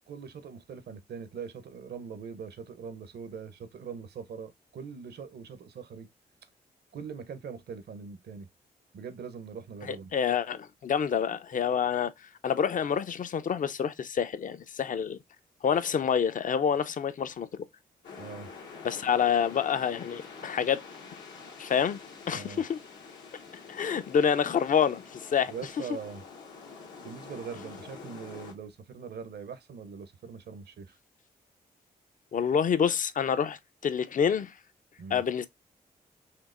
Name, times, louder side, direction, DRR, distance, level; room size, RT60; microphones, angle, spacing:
voice 1, 0.1-6.1 6.9-8.5 8.9-10.1 18.2-18.5 22.3-22.6 25.5-26.2 27.0-31.0 35.0-35.2, right 6 dB, 65° right, 0.7 m, -42 dB
voice 2, 9.9-12.1 12.4-15.2 15.6-17.6 18.8-20.8 21.6-22.0 22.3-22.8 23.7-25.5 32.3-34.5 35.1-35.5, left 7 dB, 45° left, 0.5 m, -27 dB
sound 1, 18.0-28.5, left 5 dB, 80° left, 1.1 m, -47 dB
4.4 x 2.9 x 2.4 m
supercardioid pair, 45°, 18 cm